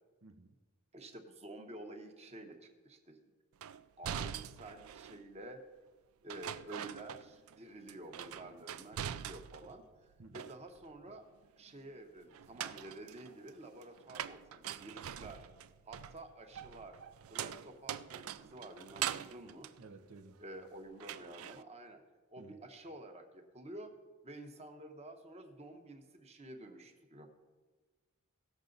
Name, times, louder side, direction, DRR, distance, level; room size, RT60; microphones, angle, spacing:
voice 1, 0.2-0.5 10.2-10.4 19.8-20.3 22.4-22.6, right 3 dB, 85° right, 7 dB, 0.8 m, -54 dB
voice 2, 0.9-3.2 4.0-5.6 6.2-11.3 11.6-15.5 15.8-17.0 17.3-19.7 20.4-22.0 22.3-23.9 24.2-27.3, right 1 dB, 30° right, 5 dB, 1.0 m, -50 dB
sound 1, 3.6-5.2 6.3-7.6 7.9-9.8 10.1-10.9 12.3-20.6 21.0-21.6, right 9 dB, 65° right, 0.4 m, -43 dB
17.0 x 6.8 x 3.9 m, 1.3 s
head